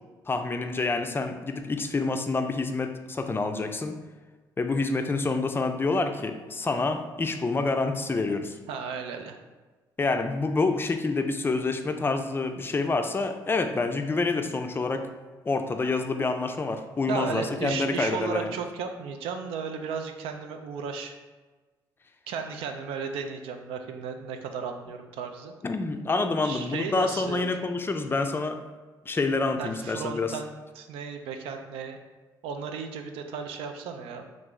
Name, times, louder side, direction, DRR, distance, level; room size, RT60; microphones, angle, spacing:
voice 1, 0.3-4.0 4.6-8.6 10.0-15.1 15.5-18.5 25.6-28.6 29.1-30.4, left 3 dB, 25° left, 7 dB, 0.4 m, -27 dB
voice 2, 8.7-9.4 17.1-21.1 22.3-25.5 26.4-27.7 29.6-32.0 32.4-34.3, right 6 dB, 80° right, 5 dB, 0.4 m, -35 dB
3.0 x 2.5 x 3.6 m, 1.3 s
supercardioid pair, 60°, 9 cm